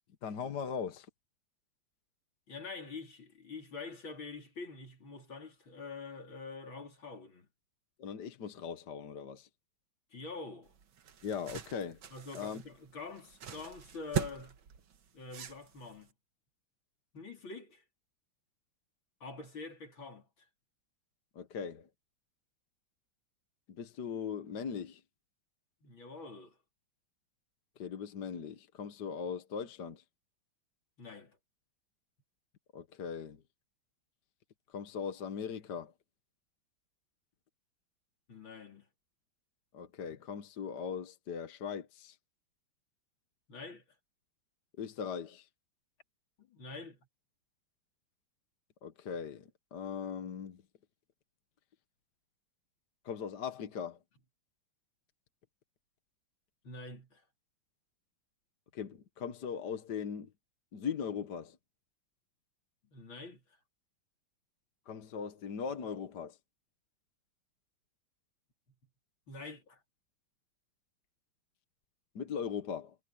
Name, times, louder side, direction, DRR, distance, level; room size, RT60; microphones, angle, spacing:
voice 1, 0.2-1.1 8.0-9.5 11.2-12.0 12.3-12.6 21.4-21.9 23.7-25.0 27.8-30.0 32.7-33.4 34.7-35.9 39.7-42.2 44.7-45.5 48.8-50.6 53.0-54.0 58.7-60.3 60.7-61.6 64.9-66.4 72.2-73.0, left 7 dB, 60° left, 1.7 m, -39 dB
voice 2, 2.5-7.5 10.1-10.7 12.1-14.6 15.1-16.1 17.1-17.8 19.2-20.3 25.8-26.6 31.0-31.4 38.3-38.9 43.5-43.8 46.4-47.0 56.6-57.2 62.8-63.6 69.3-69.8, left 4 dB, 80° left, 4.5 m, -46 dB
sound 1, 10.7-16.1, right 9 dB, 85° right, 2.2 m, -41 dB
omnidirectional pair, 2.1 m